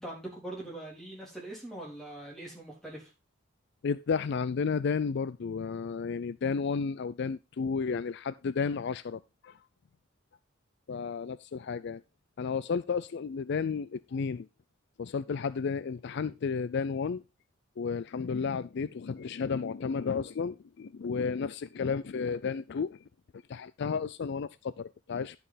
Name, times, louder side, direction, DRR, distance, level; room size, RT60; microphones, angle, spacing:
voice 1, 0.0-3.1, right 1 dB, ahead, 3.6 m, -42 dB
voice 2, 3.8-9.6 10.9-12.0 12.4-14.5 15.0-17.2 17.8-23.0 23.5-25.4, left 5 dB, 55° left, 0.4 m, -32 dB
11.0 x 5.5 x 4.0 m
head